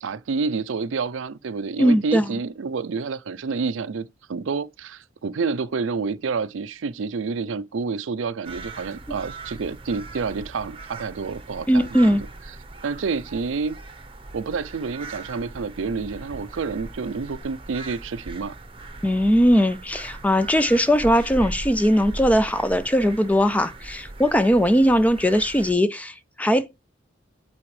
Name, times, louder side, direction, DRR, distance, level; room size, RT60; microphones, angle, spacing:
voice 1, 0.0-12.2 12.8-13.8 14.3-18.6, right 4 dB, 85° right, 0.5 m, -29 dB
voice 2, 1.8-2.3 11.7-12.2 19.0-26.8, equal, 10° left, 0.4 m, -19 dB
sound 1, 8.4-25.7, right 2 dB, 30° right, 0.8 m, -39 dB
8.6 x 4.2 x 3.2 m
head